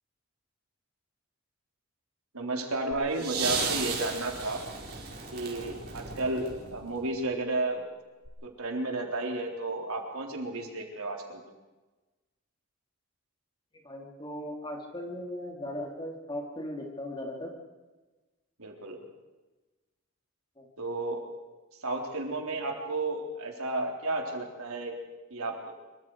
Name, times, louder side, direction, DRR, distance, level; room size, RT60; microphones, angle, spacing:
voice 1, 2.3-4.6 5.3-7.8 8.4-11.5 18.6-19.0 20.8-21.2 21.8-24.9 25.3-25.7, right 2 dB, 75° right, 1 dB, 3.9 m, -32 dB
sound 1, 2.9-7.1 8.2-8.3, right 5 dB, 45° right, 4.9 m, -35 dB
voice 2, 13.8-17.5 20.6-20.7, left 1 dB, 20° left, 1 dB, 3.3 m, -38 dB
25.5 x 24.5 x 4.9 m, 1.2 s
head